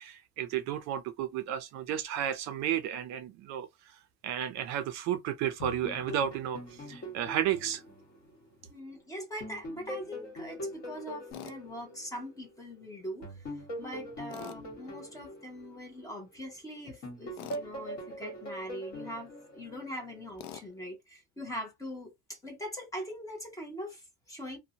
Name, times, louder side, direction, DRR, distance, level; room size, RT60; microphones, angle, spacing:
voice 1, 0.0-3.7 4.2-7.8, right 10 dB, 50° right, 0.4 m, -32 dB
sound 1, 5.6-8.9 9.4-12.7 13.2-16.5 17.0-20.3, equal, 45° left, 1.5 m, -43 dB
voice 2, 8.7-13.5 13.8-24.6, equal, 10° left, 0.6 m, -42 dB
Tools, 11.3-11.6 14.3-14.6 17.4-17.7 20.4-20.7, left 10 dB, 75° left, 0.5 m, -44 dB
2.6 x 2.1 x 2.7 m
cardioid pair, 180°, 35 cm